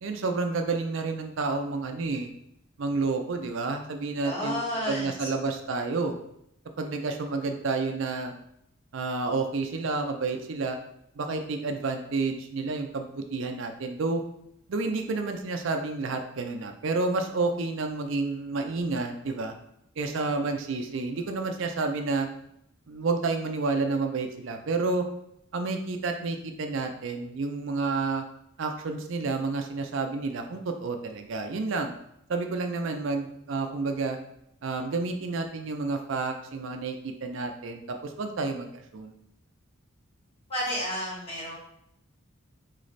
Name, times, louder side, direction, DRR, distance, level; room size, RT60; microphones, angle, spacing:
voice 1, 0.0-2.3 2.8-6.1 6.8-8.3 8.9-10.8 11.2-14.2 14.7-19.5 20.0-22.3 22.9-25.1 25.5-28.2 28.6-31.9 32.3-34.2 34.6-39.1, right 3 dB, 60° right, 5 dB, 0.4 m, -30 dB
voice 2, 4.2-5.3 40.5-41.5, left 1 dB, 30° left, -6 dB, 1.6 m, -31 dB
4.0 x 3.2 x 4.0 m, 0.76 s
head